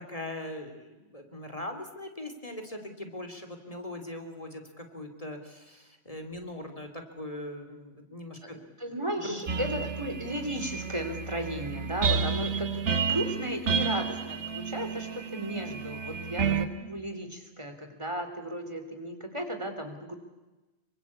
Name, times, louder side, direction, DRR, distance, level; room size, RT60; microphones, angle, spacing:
voice 1, 0.0-8.6 8.9-9.8 12.2-12.4 16.1-16.4, left 1 dB, 30° left, 6 dB, 3.1 m, -41 dB
voice 2, 8.4-20.2, equal, 25° right, 6 dB, 3.2 m, -35 dB
sound 1, 9.5-16.7, right 6 dB, 90° right, 1.9 m, -31 dB
26.0 x 24.5 x 8.5 m, 1.1 s
omnidirectional pair, 1.1 m